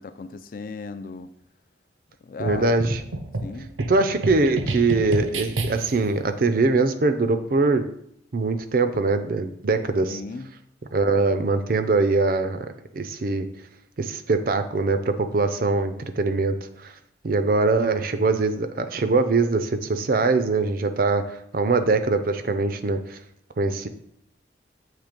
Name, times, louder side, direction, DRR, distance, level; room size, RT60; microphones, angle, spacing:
voice 1, 0.0-1.3 2.2-2.7 3.4-3.7 10.1-10.5, left 4 dB, 45° left, 10 dB, 0.4 m, -36 dB
voice 2, 2.4-3.0 3.9-7.8 8.3-10.2 10.9-12.7 12.9-13.5 14.0-16.9 17.2-21.2 21.5-23.2 23.6-23.9, right 3 dB, 50° right, 9 dB, 0.5 m, -22 dB
sound 1, 2.5-6.1, right 2 dB, 85° right, 0.7 m, -30 dB
7.4 x 3.2 x 5.1 m, 0.73 s
head